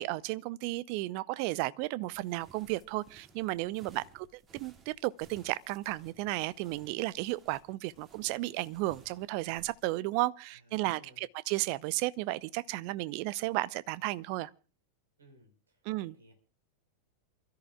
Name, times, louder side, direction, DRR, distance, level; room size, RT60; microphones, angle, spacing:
voice 1, 0.0-4.3 4.5-14.5 15.9-16.1, right 18 dB, 45° right, 0.6 m, -33 dB
sound 1, 2.1-9.9, right 4 dB, 25° right, 2.4 m, -59 dB
voice 2, 10.5-11.2 15.2-16.3, right 1 dB, 70° right, 4.6 m, -60 dB
28.5 x 13.5 x 2.4 m
figure-of-eight pair, 90°, 0 cm